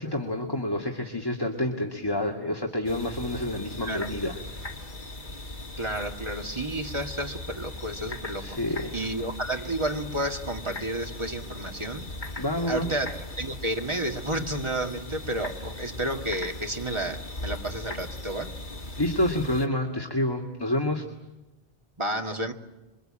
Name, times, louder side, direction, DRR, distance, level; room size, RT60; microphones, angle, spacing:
voice 1, 0.0-4.4 8.4-9.0 12.4-12.9 19.0-21.0, left 1 dB, 20° left, 1 dB, 2.2 m, -28 dB
sound 1, 2.8-19.7, left 2 dB, 50° left, 2.6 m, -39 dB
voice 2, 3.8-4.1 5.8-8.6 8.9-12.1 12.7-18.5 22.0-22.5, right 1 dB, 30° right, 4 dB, 2.0 m, -31 dB
27.0 x 24.0 x 8.8 m, 1.0 s
omnidirectional pair, 1.0 m